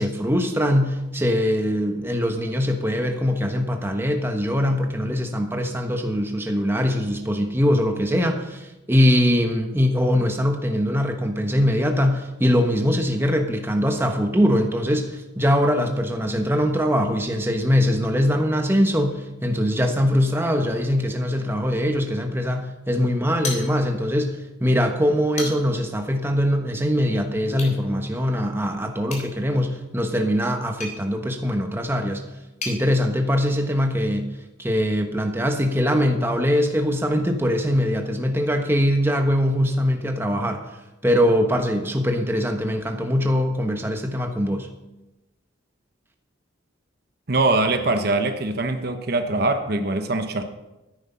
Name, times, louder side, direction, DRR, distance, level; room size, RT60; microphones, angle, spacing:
voice 1, 0.0-32.2 32.6-34.2 34.6-40.6 41.0-44.7, equal, 10° right, 4 dB, 1.1 m, -22 dB
sound 1, 23.4-24.2 24.5-24.6 25.1-25.9 27.5-27.8 29.0-32.8, left 3 dB, 35° left, 3.5 m, -36 dB
voice 2, 47.3-50.4, right 2 dB, 50° right, 7 dB, 1.0 m, -22 dB
13.5 x 9.9 x 5.7 m, 1.0 s
head